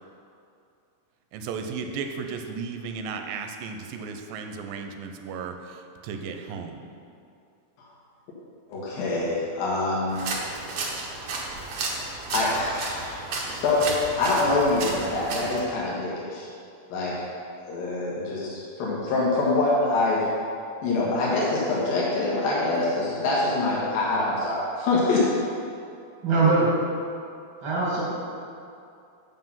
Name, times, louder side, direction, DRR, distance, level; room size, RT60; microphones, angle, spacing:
voice 1, 1.3-6.9, right 5 dB, 80° right, 5 dB, 2.3 m, -35 dB
voice 2, 8.7-10.2 12.3-13.2 13.5-16.5 16.9-17.2 17.6-20.3 20.8-25.3, left 2 dB, 75° left, -6 dB, 3.3 m, -25 dB
sound 1, 10.1-15.6, right 3 dB, 65° right, 1.6 m, -33 dB
voice 3, 26.2-26.7 27.6-28.0, right 3 dB, 40° right, -6 dB, 2.5 m, -21 dB
7.7 x 7.4 x 5.6 m, 2.5 s
omnidirectional pair, 4.2 m